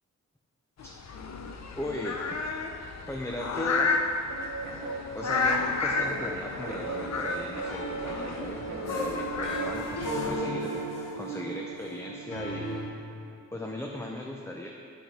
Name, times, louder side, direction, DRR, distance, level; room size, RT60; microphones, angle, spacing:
sound 1, 0.8-10.3, left 4 dB, 60° left, 0.7 m, -32 dB
voice 1, 1.8-2.2 3.1-3.9 5.1-10.8 11.1-12.8 13.5-14.7, left 1 dB, 10° left, 0 dB, 0.7 m, -37 dB
Guitar, 4.3-9.7, right 3 dB, 90° right, 0.9 m, -38 dB
sound 2, 6.9-12.9, right 1 dB, 80° left, 1.1 m, -35 dB
7.8 x 6.2 x 4.2 m, 2.7 s
cardioid pair, 45°, 31 cm